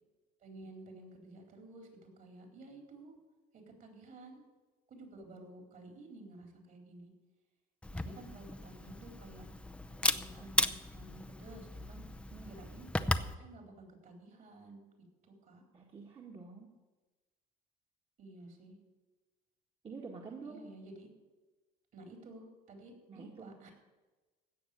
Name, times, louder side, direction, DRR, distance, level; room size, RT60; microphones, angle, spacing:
voice 1, 0.4-3.2 3.8-4.4 4.9-7.1 7.9-9.5 10.0-12.0 12.5-14.8 15.2-15.6 18.2-18.8 20.4-21.1 21.9-23.7, right 2 dB, 55° right, 3 dB, 4.2 m, -52 dB
Camera, 7.8-13.3, left 1 dB, 5° left, 0.7 m, -36 dB
voice 2, 15.7-16.7 19.8-20.6 23.1-23.7, right 4 dB, 35° right, -1 dB, 1.9 m, -48 dB
16.5 x 6.4 x 9.7 m, 1.2 s
cardioid pair, 110°, 17 cm